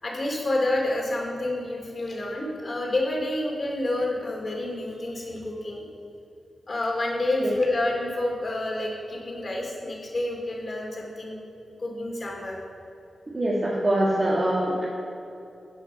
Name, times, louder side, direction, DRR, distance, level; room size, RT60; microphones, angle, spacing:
voice 1, 0.0-5.8 6.7-11.4 11.8-12.6, left 1 dB, 45° left, -1 dB, 2.4 m, -28 dB
voice 2, 13.3-14.9, right 1 dB, 35° right, -5 dB, 1.5 m, -24 dB
11.5 x 5.6 x 5.5 m, 2.7 s
cardioid pair, 70°, 0 cm